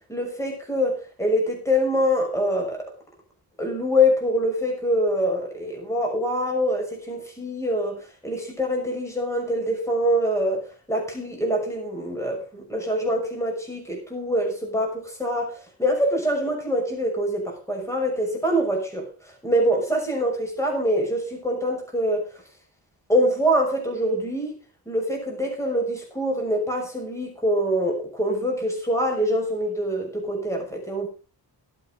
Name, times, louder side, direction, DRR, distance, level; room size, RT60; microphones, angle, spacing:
voice 1, 0.1-2.8 3.6-10.6 10.9-15.5 15.8-19.1 19.4-22.3 23.1-24.6 24.9-31.1, equal, 5° left, 1 dB, 6.0 m, -24 dB
18.0 x 9.0 x 5.2 m, 0.35 s
wide cardioid pair, 130°, 43 cm